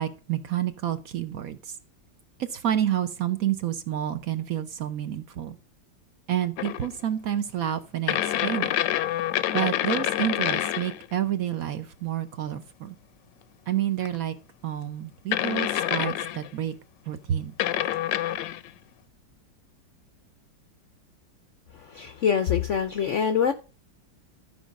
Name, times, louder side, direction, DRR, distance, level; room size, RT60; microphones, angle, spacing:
voice 1, 0.0-1.6 2.5-5.5 6.3-8.7 9.5-13.0 13.7-14.3 14.6-16.7 17.1-17.5, right 11 dB, 60° right, 1.0 m, -29 dB
sound 1, 6.6-6.9 8.1-11.1 14.1-14.2 15.3-16.5 17.6-18.7, left 12 dB, 80° left, 1.3 m, -27 dB
voice 2, 21.8-23.5, left 7 dB, 65° left, 0.7 m, -24 dB
12.5 x 5.0 x 5.1 m
omnidirectional pair, 1.9 m